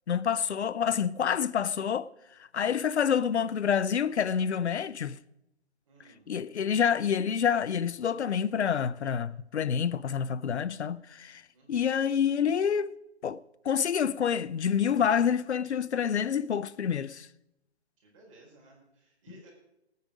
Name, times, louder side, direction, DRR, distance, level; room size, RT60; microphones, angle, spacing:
voice 1, 0.1-2.1 2.5-5.2 6.3-11.4 11.7-12.9 13.2-17.3, left 7 dB, 80° left, 0.6 m, -28 dB
voice 2, 5.8-6.3 11.5-11.9 18.0-19.5, right 2 dB, 30° right, 4.7 m, -57 dB
18.0 x 9.5 x 5.1 m
hypercardioid pair, 165°, 33 cm